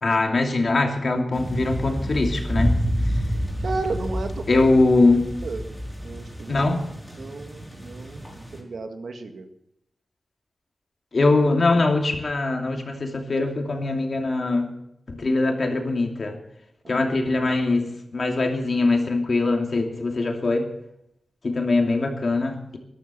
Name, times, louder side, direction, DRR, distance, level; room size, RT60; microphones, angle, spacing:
voice 1, 0.0-2.8 4.5-5.3 6.5-6.8 11.1-14.7 15.1-16.4 16.9-20.7 21.4-22.8, left 2 dB, 60° left, 3 dB, 2.8 m, -22 dB
sound 1, 1.3-8.6, equal, 10° left, 5.0 m, -29 dB
voice 2, 3.6-4.6 5.4-5.6 6.0-6.6 7.2-9.5 16.8-17.1, right 3 dB, 80° right, 6 dB, 1.8 m, -33 dB
13.5 x 12.0 x 7.0 m, 0.78 s
wide cardioid pair, 70°, 0 cm